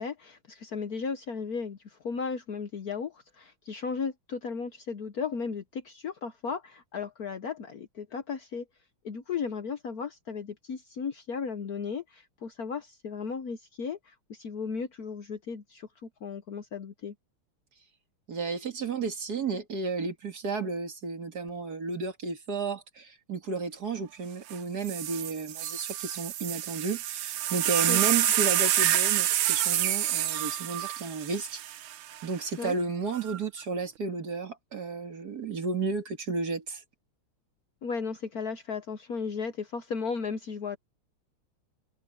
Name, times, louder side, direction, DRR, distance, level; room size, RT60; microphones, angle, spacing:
voice 1, 0.0-8.6 9.0-17.1 27.9-28.0 28.3-28.4 32.6-32.7 37.8-40.8, left 5 dB, 55° left, 1.2 m, -35 dB
voice 2, 18.3-31.6 32.2-36.8, right 4 dB, 50° right, 2.4 m, -33 dB
sound 1, 24.5-24.6 24.9-32.3 33.1-33.6, right 12 dB, 90° right, 1.7 m, -28 dB
omnidirectional pair, 2.3 m